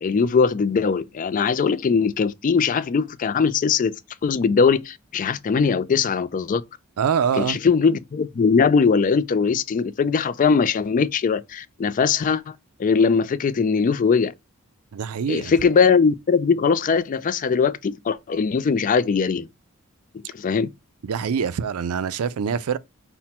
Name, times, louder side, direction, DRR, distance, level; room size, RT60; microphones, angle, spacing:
voice 1, 0.0-3.9 4.2-6.6 7.4-12.5 12.8-14.3 15.3-19.5 20.3-20.7, left 5 dB, 40° left, 0.3 m, -20 dB
voice 2, 7.0-7.6 14.9-15.5 21.0-22.8, right 7 dB, 85° right, 0.4 m, -24 dB
5.7 x 2.1 x 4.2 m
head